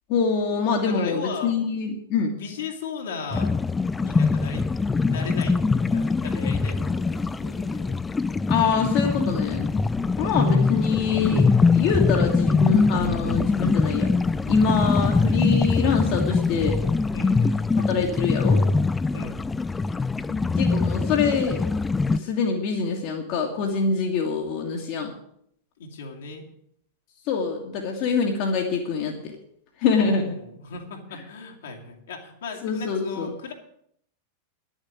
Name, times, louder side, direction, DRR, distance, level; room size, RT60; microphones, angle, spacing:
voice 1, 0.1-2.3 8.5-9.7 10.2-14.1 14.5-16.8 17.9-18.6 20.3-21.6 22.1-25.1 27.3-29.3 29.8-30.4 32.6-33.3, left 5 dB, 45° left, 1 dB, 1.8 m, -25 dB
voice 2, 0.9-1.7 2.3-3.6 4.0-4.6 5.0-8.0 10.1-10.7 14.8-15.0 17.1-17.7 19.1-19.4 25.8-26.4 29.9-33.5, left 4 dB, 60° left, 2 dB, 2.3 m, -37 dB
sound 1, 3.3-22.2, left 4 dB, 10° left, 0.4 m, -23 dB
10.5 x 7.3 x 9.4 m, 0.70 s
figure-of-eight pair, 90°, 0 cm